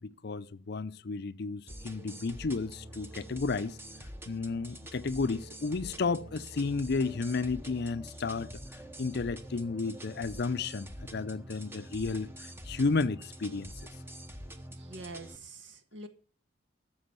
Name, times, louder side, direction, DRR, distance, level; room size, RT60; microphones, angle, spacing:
voice 1, 0.0-3.8 4.3-8.5 9.0-13.7, left 4 dB, 55° left, 0.5 m, -32 dB
sound 1, 1.7-15.4, right 1 dB, 10° right, 1.0 m, -46 dB
voice 2, 14.7-16.1, right 2 dB, 65° right, 1.6 m, -45 dB
13.0 x 7.0 x 6.9 m
head